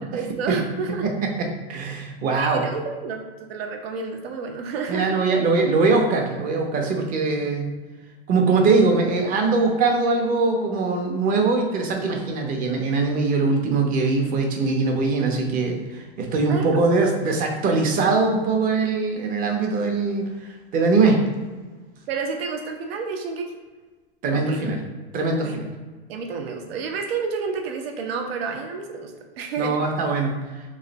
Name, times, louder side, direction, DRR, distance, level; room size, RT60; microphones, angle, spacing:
voice 1, 0.0-1.0 2.3-5.2 12.0-12.2 16.5-17.0 22.1-23.5 24.3-24.6 25.4-25.6 26.1-29.8, right 5 dB, 75° right, 3 dB, 0.8 m, -30 dB
voice 2, 1.0-2.6 4.9-7.7 8.3-21.2 24.2-24.8 25.1-25.7 29.6-30.4, right 3 dB, 25° right, 2 dB, 0.7 m, -22 dB
3.5 x 3.2 x 3.9 m, 1.3 s
supercardioid pair, 140°, 31 cm